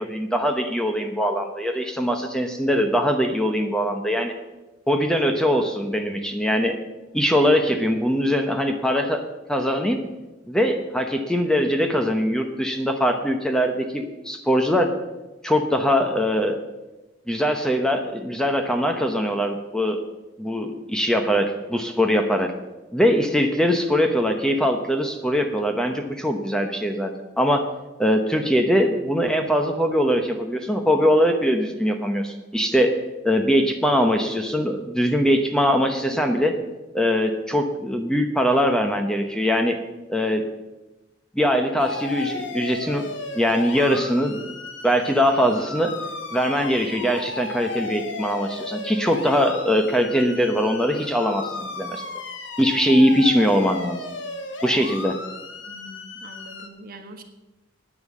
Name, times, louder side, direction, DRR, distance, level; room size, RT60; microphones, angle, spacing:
voice 1, 0.0-4.3 4.9-6.8 7.1-9.2 9.5-10.0 10.5-14.9 15.4-16.6 17.3-20.0 20.4-22.5 22.9-27.1 27.4-27.7 28.0-36.5 36.9-39.8 40.1-40.4 41.3-44.5 44.8-45.9 46.3-52.0 52.6-54.0 54.6-55.2, equal, 5° left, 5 dB, 0.8 m, -22 dB
sound 1, 41.8-56.7, left 3 dB, 70° left, 1.3 m, -35 dB
voice 2, 55.7-57.2, right 1 dB, 50° right, 5 dB, 1.4 m, -43 dB
10.5 x 9.3 x 7.3 m, 1.1 s
head